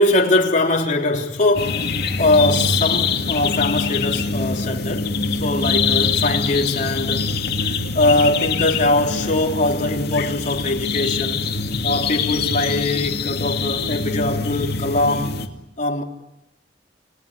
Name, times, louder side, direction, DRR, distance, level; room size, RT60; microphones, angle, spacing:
voice 1, 0.0-1.9 2.2-5.1 5.4-7.3 7.6-11.6 11.8-15.4 15.8-16.0, left 2 dB, 45° left, 3.4 m, -21 dB
sound 1, 1.5-15.5, left 4 dB, 60° left, 2.5 m, -24 dB
30.0 x 19.0 x 9.9 m
head